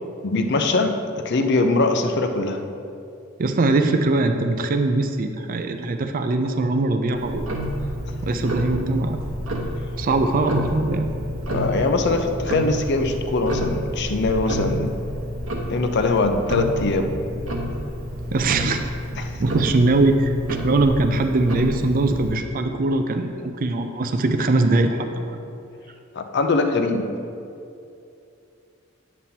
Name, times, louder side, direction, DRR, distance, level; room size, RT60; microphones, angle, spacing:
voice 1, 0.2-2.6 11.5-14.9 15.7-17.2 19.2-19.3 19.7-19.8 26.1-27.1, left 3 dB, 55° left, 6 dB, 0.6 m, -22 dB
voice 2, 3.4-7.6 8.2-9.2 9.9-11.1 18.3-18.8 19.4-25.4, right 2 dB, 40° right, 6 dB, 0.4 m, -21 dB
Tick-tock, 7.1-22.4, equal, 70° right, 1.0 m, -29 dB
9.3 x 7.3 x 2.8 m, 2.6 s
head